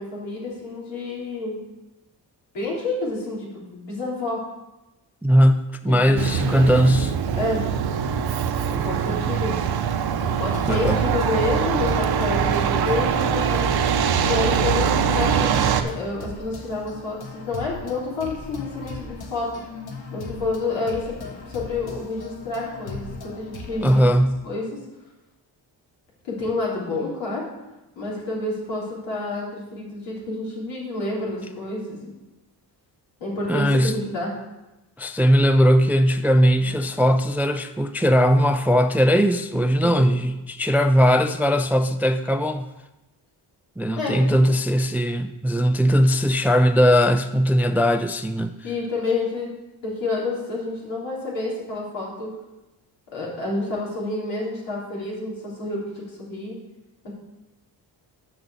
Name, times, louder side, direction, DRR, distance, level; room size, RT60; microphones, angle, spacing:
voice 1, 0.0-1.6 2.5-4.4 5.8-6.2 7.3-7.7 8.6-9.8 10.2-13.7 14.2-15.5 15.8-19.5 20.1-21.2 21.5-24.0 24.4-24.7 26.2-27.4 27.9-32.1 33.2-34.3 36.6-36.7 39.8-40.1 44.0-44.2 48.6-49.5 49.8-52.3 53.1-56.5 57.0-57.1, left 3 dB, 80° left, -5 dB, 3.4 m, -29 dB
voice 2, 5.2-7.2 10.7-11.0 23.8-24.4 33.5-33.9 35.0-42.7 43.8-48.5, equal, 5° right, 9 dB, 0.3 m, -19 dB
Truck, 6.2-15.8, right 7 dB, 60° right, 0.8 m, -23 dB
sound 1, 10.3-24.2, left 3 dB, 60° left, 1.3 m, -38 dB
6.3 x 5.9 x 6.8 m, 1.0 s
cardioid pair, 85°, 44 cm